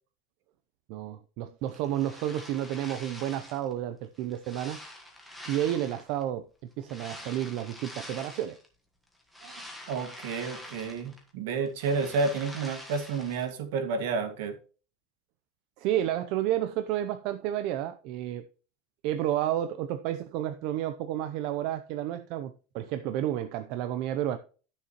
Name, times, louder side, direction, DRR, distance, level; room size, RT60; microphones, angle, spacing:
voice 1, 0.9-4.8 5.5-6.5 6.8-8.6 15.8-18.4 19.0-24.4, right 12 dB, 45° right, 0.6 m, -31 dB
sound 1, 1.7-3.7 4.1-6.2 6.8-8.7 9.1-11.3 11.6-13.5, left 1 dB, ahead, 1.5 m, -46 dB
voice 2, 9.9-14.6, right 4 dB, 65° right, 1.9 m, -30 dB
12.5 x 6.7 x 3.0 m
supercardioid pair, 175°, 0 cm